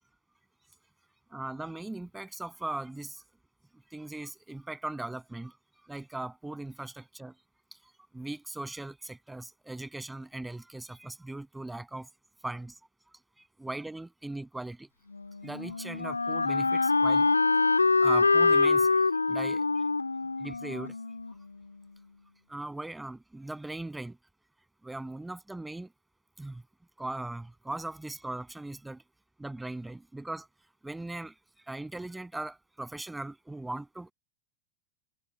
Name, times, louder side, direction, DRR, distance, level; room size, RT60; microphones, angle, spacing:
voice 1, 1.3-3.2 3.9-5.5 5.9-7.4 8.1-12.1 12.4-12.7 13.6-14.9 15.4-17.3 17.8-18.9 19.3-19.6 20.4-20.9 22.5-24.2 24.8-25.9 26.4-26.6 27.0-29.0 29.4-30.5 30.8-31.3 31.7-34.1, right 2 dB, 5° right, 7.8 m, -39 dB
Wind instrument woodwind instrument, 15.1-22.0, left 3 dB, 80° left, 2.3 m, -25 dB
figure-of-eight pair, 90°, 0 cm